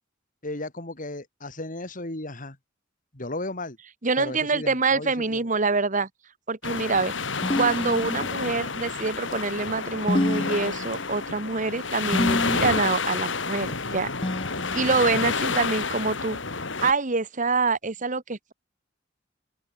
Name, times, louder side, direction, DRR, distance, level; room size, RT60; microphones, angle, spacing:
voice 1, 0.4-2.6 3.1-3.8 4.2-5.5, left 2 dB, 45° left, 3.1 m, -35 dB
voice 2, 4.0-6.1 6.5-7.1 7.6-14.1 14.7-16.4 16.8-18.5, right 4 dB, 40° right, 1.3 m, -25 dB
sound 1, 6.6-16.9, left 4 dB, 65° left, 3.0 m, -29 dB
sound 2, 7.4-8.6 10.1-11.2 12.1-13.0 14.2-15.2, left 1 dB, 25° left, 0.9 m, -28 dB
open air
head